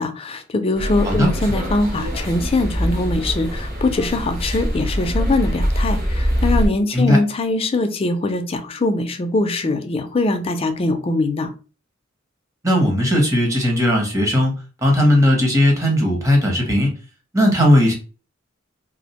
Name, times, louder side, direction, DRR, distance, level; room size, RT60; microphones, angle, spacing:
voice 1, 0.0-11.5, left 2 dB, 30° left, 8 dB, 0.4 m, -22 dB
sound 1, 0.7-6.7, equal, 45° right, 0.9 m, -23 dB
voice 2, 12.6-14.5 14.8-16.9 17.3-18.0, left 1 dB, 15° right, 1 dB, 0.7 m, -17 dB
2.4 x 2.0 x 2.8 m, 0.35 s
head